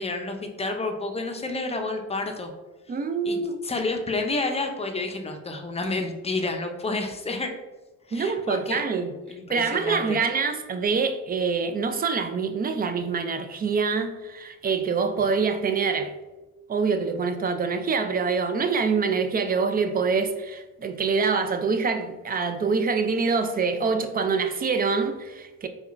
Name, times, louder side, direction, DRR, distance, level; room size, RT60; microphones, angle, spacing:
voice 1, 0.0-2.5 3.2-7.5 8.1-8.8 9.3-10.2, left 3 dB, 20° left, 0.5 m, -30 dB
voice 2, 2.9-3.6 8.1-9.1 9.5-16.1 16.7-25.7, right 5 dB, 30° right, 0.4 m, -25 dB
4.7 x 2.3 x 2.5 m
cardioid pair, 90°, 30 cm